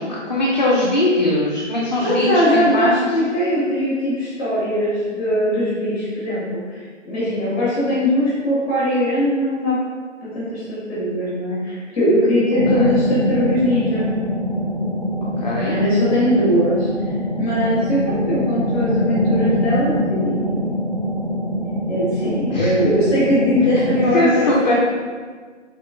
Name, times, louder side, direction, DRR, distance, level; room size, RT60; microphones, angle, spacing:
voice 1, 0.0-3.1 12.7-12.9 15.2-15.8 22.5-22.8 23.9-24.7, left 1 dB, 40° left, -5 dB, 0.5 m, -21 dB
voice 2, 2.0-9.8 10.3-14.1 15.6-16.9 17.4-20.8 21.9-24.7, left 1 dB, 15° left, -9 dB, 1.3 m, -20 dB
sound 1, 12.5-24.1, equal, 20° right, 1.2 m, -23 dB
4.2 x 3.6 x 2.5 m, 1.5 s
figure-of-eight pair, 150°, 37 cm